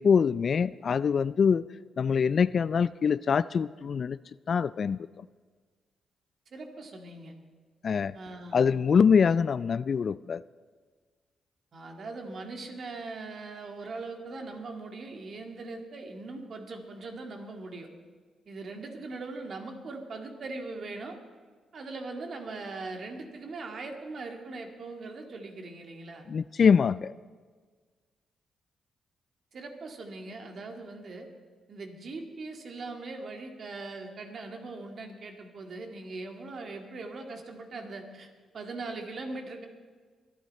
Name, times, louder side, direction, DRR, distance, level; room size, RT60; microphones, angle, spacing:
voice 1, 0.0-1.6 2.0-4.2 4.5-5.0 7.8-8.1 8.5-10.4 26.3-27.1, left 6 dB, 55° left, 19 dB, 0.3 m, -24 dB
voice 2, 6.5-7.3 8.1-8.6 11.7-17.9 18.5-21.2 21.7-26.3 29.5-31.3 31.7-38.3 38.5-39.7, right 3 dB, 60° right, 3 dB, 2.2 m, -40 dB
23.0 x 9.3 x 4.3 m, 1.5 s
supercardioid pair, 55°, 0 cm